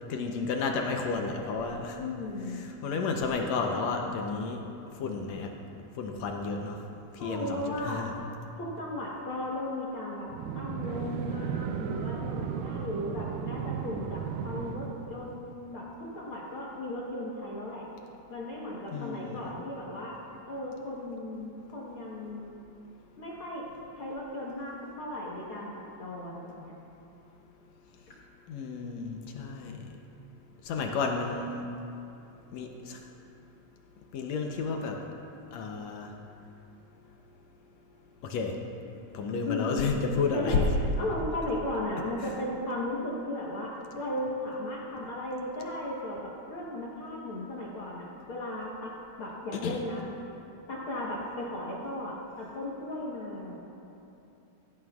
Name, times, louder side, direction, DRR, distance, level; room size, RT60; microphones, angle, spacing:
voice 1, 0.1-2.0 2.5-4.6 5.0-5.5 6.0-6.8 7.1-8.1 18.9-19.4 28.5-29.9 30.6-31.7 32.5-33.0 34.1-35.0 35.5-36.1 38.2-38.6 39.1-40.6 42.2-42.3 49.5-49.8, left 4 dB, 75° left, 2 dB, 1.6 m, -32 dB
voice 2, 2.0-2.6 7.2-8.0 8.6-10.3 10.5-17.8 18.3-20.2 20.5-22.5 23.2-23.7 24.0-26.7 39.5-39.9 40.3-40.7 41.0-50.0 50.7-53.6, left 1 dB, 60° left, -5 dB, 1.5 m, -36 dB
sound 1, 10.3-15.5, right 8 dB, 80° right, 2.1 m, -35 dB
17.0 x 14.5 x 2.4 m, 2.8 s
omnidirectional pair, 3.9 m